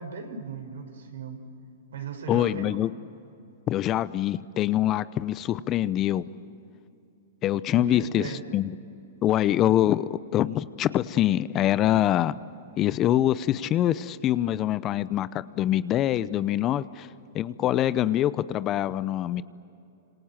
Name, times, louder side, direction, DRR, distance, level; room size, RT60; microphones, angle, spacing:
voice 1, 0.0-1.4 1.9-2.8 7.7-8.4, right 5 dB, 75° right, 5 dB, 5.3 m, -37 dB
voice 2, 2.3-2.9 3.7-6.3 7.4-8.7 9.2-12.3 12.8-17.1 17.3-19.4, left 12 dB, 30° left, 17 dB, 0.7 m, -24 dB
29.5 x 27.0 x 7.5 m, 2.7 s
hypercardioid pair, 125°, 0 cm